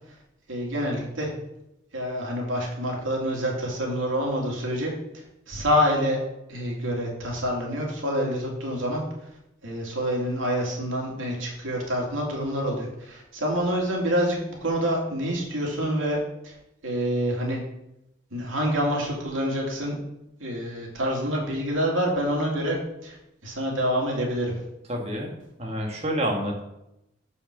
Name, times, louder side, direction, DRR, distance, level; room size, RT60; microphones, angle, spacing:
voice 1, 0.5-1.3 1.9-4.9 5.5-6.2 6.5-9.0 9.6-16.2 16.4-16.6 16.8-17.6 18.3-20.0 20.4-23.2 23.4-24.6, equal, 90° right, -1 dB, 2.5 m, -27 dB
voice 2, 24.9-25.3 25.6-26.6, equal, 35° right, 0 dB, 1.7 m, -28 dB
6.9 x 5.7 x 6.0 m, 0.86 s
head